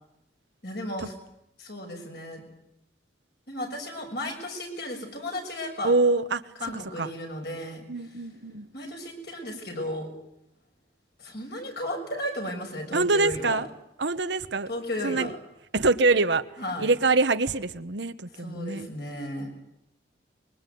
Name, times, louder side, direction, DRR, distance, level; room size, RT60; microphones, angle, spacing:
voice 1, 0.6-1.1 1.6-2.5 3.5-5.9 6.6-7.8 8.7-10.1 11.2-13.7 14.7-15.3 16.6-16.9 18.4-19.5, left 1 dB, 55° left, 2 dB, 6.5 m, -34 dB
voice 2, 5.8-6.4 7.0-7.1 7.9-8.7 12.9-13.7 14.0-14.7 15.0-15.3 15.7-16.4 16.8-18.9, right 3 dB, 70° right, 11 dB, 1.1 m, -24 dB
25.0 x 22.5 x 9.4 m, 0.81 s
head